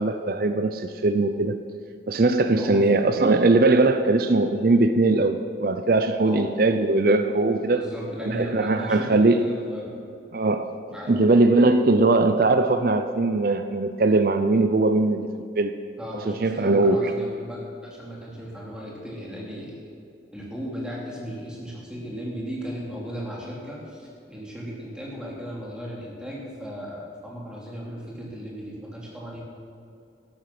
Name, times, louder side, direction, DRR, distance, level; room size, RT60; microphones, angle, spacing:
voice 1, 0.0-1.6 2.1-7.9 8.2-9.4 10.3-10.7 11.1-15.3 15.6-15.7 16.3-17.1, right 2 dB, 55° right, 8 dB, 0.5 m, -20 dB
voice 2, 7.6-10.0 10.9-11.1 16.0-19.8 20.3-29.4, equal, 5° right, -4 dB, 2.9 m, -36 dB
13.5 x 11.5 x 6.0 m, 2.5 s
head